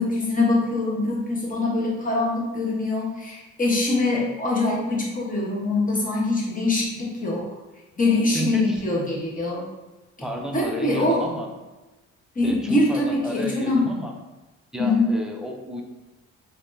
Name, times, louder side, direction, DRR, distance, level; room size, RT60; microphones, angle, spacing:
voice 1, 0.0-7.5 8.0-9.6 10.5-11.3 12.3-13.9 14.8-15.1, left 2 dB, 25° left, -4 dB, 1.2 m, -23 dB
voice 2, 8.3-8.8 10.2-11.5 12.4-14.1 14.7-15.8, equal, ahead, 1 dB, 0.6 m, -32 dB
4.2 x 2.9 x 2.7 m, 1.1 s
cardioid pair, 90°, 30 cm